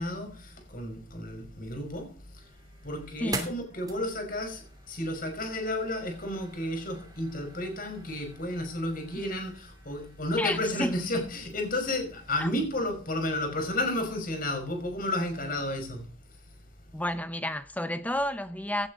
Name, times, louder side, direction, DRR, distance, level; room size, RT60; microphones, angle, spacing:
voice 1, 0.0-2.1 2.8-16.0, left 1 dB, 45° left, 5.3 m, -32 dB
sound 1, 1.6-12.6, right 3 dB, 20° right, 2.7 m, -46 dB
voice 2, 3.2-3.5 10.4-10.9 12.4-12.5 16.9-18.9, left 1 dB, 10° left, 0.9 m, -31 dB
17.0 x 11.5 x 4.0 m
head